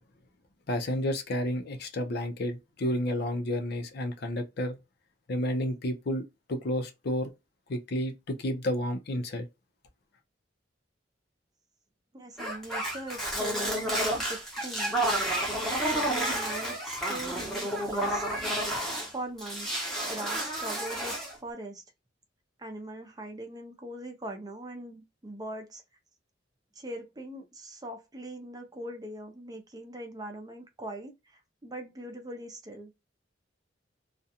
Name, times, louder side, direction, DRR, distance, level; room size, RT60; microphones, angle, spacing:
voice 1, 0.7-4.8 5.3-7.3 7.7-9.5, left 1 dB, 60° left, 0.6 m, -31 dB
voice 2, 12.1-14.9 15.5-18.3 19.1-19.7 20.1-21.8 22.6-25.8 26.8-32.9, right 1 dB, 20° right, 0.5 m, -41 dB
sound 1, 12.4-19.1 19.4-21.3, right 1 dB, ahead, 0.8 m, -30 dB
2.4 x 2.2 x 2.6 m
head